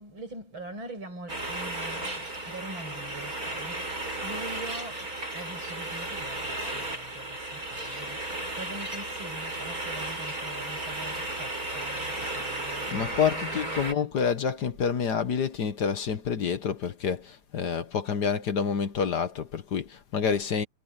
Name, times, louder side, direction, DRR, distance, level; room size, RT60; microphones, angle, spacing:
voice 1, 0.0-14.2, right 2 dB, 75° right, 8.2 m, -43 dB
sound 1, 1.3-13.9, right 1 dB, 45° right, 7.6 m, -34 dB
voice 2, 12.9-20.7, left 6 dB, 55° left, 1.7 m, -28 dB
omnidirectional pair, 2.2 m